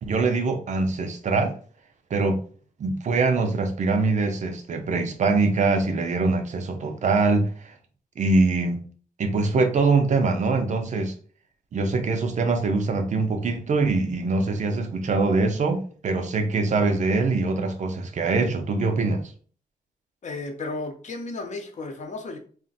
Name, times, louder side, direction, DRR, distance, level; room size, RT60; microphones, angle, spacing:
voice 1, 0.0-1.6 2.1-2.4 2.8-7.7 8.2-8.8 9.2-11.1 11.7-19.3, right 3 dB, 55° right, 0.5 m, -23 dB
voice 2, 20.2-22.4, left 3 dB, 50° left, 0.7 m, -33 dB
2.4 x 2.1 x 3.9 m
wide cardioid pair, 120°, 15 cm